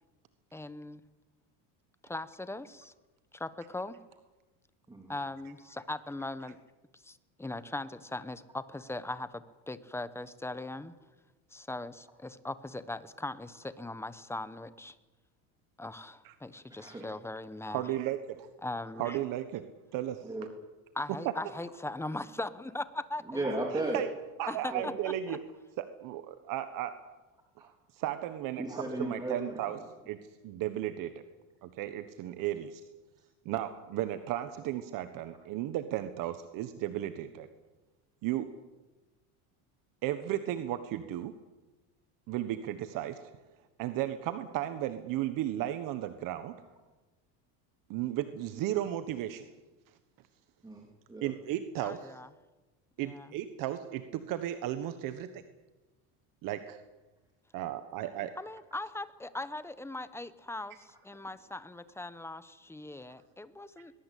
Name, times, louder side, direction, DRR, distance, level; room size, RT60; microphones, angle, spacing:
voice 1, 0.5-1.0 2.0-2.9 3.3-4.0 5.1-6.6 6.9-10.9 11.5-14.9 15.8-17.9 18.6-19.2 20.9-23.4 24.5-25.4 51.8-52.3 53.0-53.3 58.4-63.9, left 2 dB, 5° left, 14 dB, 1.0 m, -40 dB
voice 2, 17.7-18.5 19.0-19.6 19.9-20.2 23.9-24.1 24.4-25.4 25.8-26.9 27.6-29.8 30.1-30.2 30.4-31.2 31.6-32.8 33.4-37.5 38.2-38.5 40.0-41.3 42.3-43.2 43.8-46.5 47.9-49.4 51.2-52.2 53.0-55.4 56.4-56.8 57.5-58.3, right 13 dB, 55° right, 10 dB, 1.4 m, -34 dB
voice 3, 23.3-24.0 24.7-25.0 28.6-29.8 50.6-51.3, right 2 dB, 10° right, 0 dB, 3.1 m, -35 dB
21.5 x 21.5 x 8.5 m, 1.2 s
cardioid pair, 140°, 39 cm